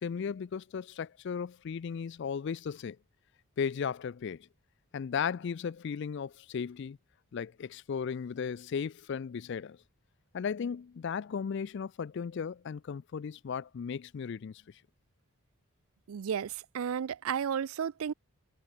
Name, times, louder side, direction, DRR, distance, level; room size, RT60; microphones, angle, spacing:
voice 1, 0.0-3.0 3.6-4.5 4.9-7.0 7.3-9.8 10.3-14.6, left 6 dB, 50° left, 0.3 m, -36 dB
voice 2, 16.1-18.1, right 7 dB, 70° right, 0.4 m, -33 dB
head